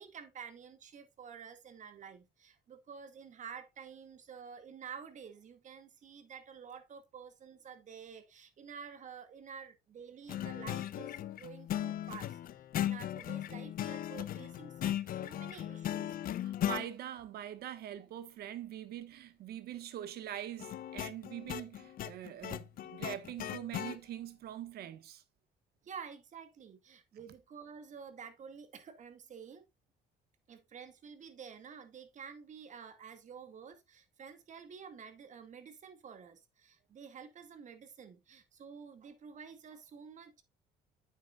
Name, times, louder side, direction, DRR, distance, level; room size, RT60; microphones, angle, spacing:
voice 1, 0.0-12.4 12.8-16.1 25.8-29.6 30.5-40.4, right 6 dB, 45° right, 2.0 m, -50 dB
sound 1, 10.3-16.9 20.6-24.0, left 12 dB, 60° left, 0.7 m, -37 dB
voice 2, 16.4-25.2, right 11 dB, 70° right, 1.4 m, -43 dB
9.6 x 8.2 x 2.4 m
cardioid pair, 110°, 17 cm